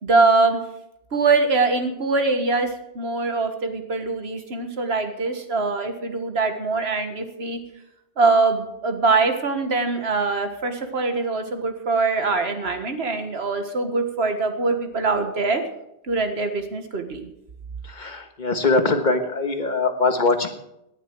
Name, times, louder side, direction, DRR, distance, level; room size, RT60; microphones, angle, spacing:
voice 1, 0.0-0.6 1.1-7.6 8.2-15.6 16.0-17.3, right 3 dB, 85° right, 7 dB, 1.8 m, -23 dB
voice 2, 17.8-20.6, left 3 dB, 50° left, 7 dB, 1.4 m, -22 dB
17.5 x 11.0 x 4.7 m, 0.83 s
omnidirectional pair, 1.0 m